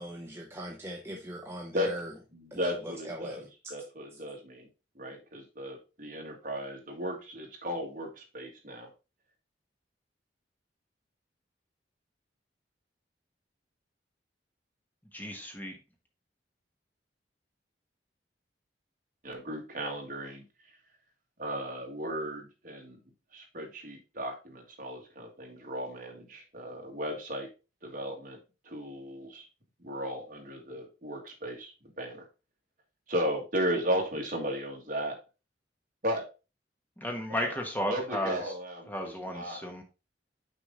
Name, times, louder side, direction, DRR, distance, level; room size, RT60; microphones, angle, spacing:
voice 1, 0.0-2.1 2.5-2.7 3.1-3.4, right 1 dB, 15° right, 1 dB, 0.7 m, -39 dB
voice 2, 2.3-4.7 5.0-8.9 19.2-20.5 21.4-23.0 23.3-27.5 27.8-28.4 28.6-29.5 29.8-31.7 32.0-32.2 33.1-35.2 36.0-36.3 37.3-39.6, equal, 45° right, 1 dB, 1.8 m, -35 dB
voice 3, 15.1-15.8 37.0-38.4 38.9-39.8, left 1 dB, 10° left, 3 dB, 1.1 m, -34 dB
6.3 x 5.2 x 3.7 m, 0.30 s
head